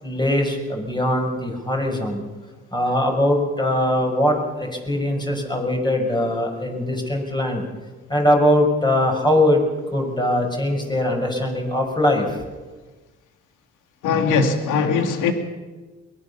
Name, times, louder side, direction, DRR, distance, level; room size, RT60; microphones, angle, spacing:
voice 1, 0.0-2.2 2.7-7.6 8.1-9.6 9.9-12.4, left 1 dB, 15° left, 1 dB, 6.0 m, -21 dB
voice 2, 14.0-15.3, left 5 dB, 85° left, 6 dB, 2.5 m, -20 dB
23.0 x 20.0 x 7.1 m, 1.3 s
cardioid pair, 90°, 30 cm